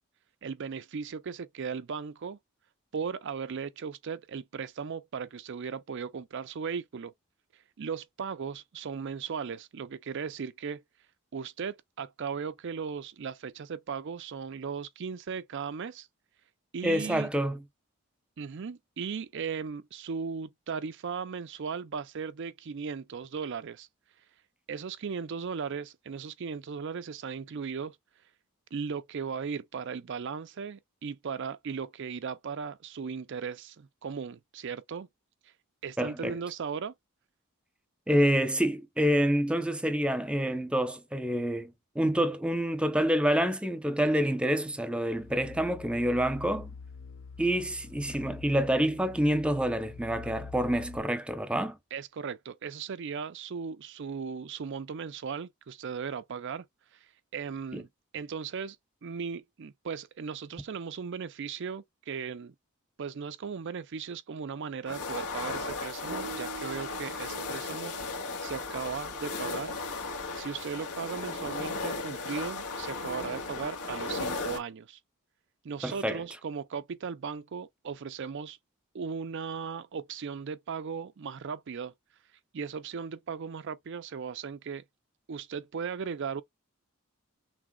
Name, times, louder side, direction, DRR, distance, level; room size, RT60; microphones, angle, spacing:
voice 1, 0.4-2.4 2.9-7.1 7.5-10.8 11.3-16.1 16.7-17.3 18.4-23.9 24.7-28.0 28.7-35.1 35.4-35.5 35.8-36.9 51.9-56.6 56.9-57.9 58.1-58.8 59.0-62.5 63.0-69.7 70.3-75.0 75.6-78.6 78.9-81.9 82.5-84.8 85.3-86.4, right 6 dB, 55° right, 0.4 m, -37 dB
voice 2, 16.8-17.6 36.0-36.3 38.1-46.7 47.4-51.8 57.7-57.8 75.8-76.2, equal, 5° right, 0.7 m, -27 dB
sound 1, 45.1-51.0, left 5 dB, 55° left, 0.5 m, -45 dB
sound 2, 64.9-74.6, left 3 dB, 80° left, 2.1 m, -36 dB
sound 3, 66.1-69.3, right 6 dB, 85° right, 0.8 m, -46 dB
6.1 x 3.8 x 2.3 m
head